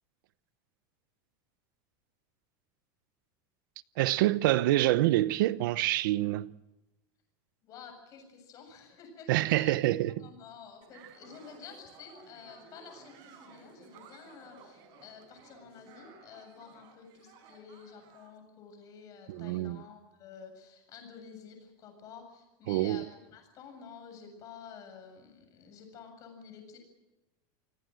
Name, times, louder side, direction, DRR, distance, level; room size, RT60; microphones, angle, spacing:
voice 1, 4.0-6.5 9.3-10.3 19.3-19.8 22.7-23.1, right 16 dB, 70° right, 0.8 m, -26 dB
voice 2, 7.6-9.8 10.2-26.8, left 6 dB, 30° left, 7.4 m, -50 dB
sound 1, 10.8-18.3, right 5 dB, 40° right, 5.0 m, -56 dB
28.5 x 19.0 x 7.8 m
supercardioid pair, 170°, 11 cm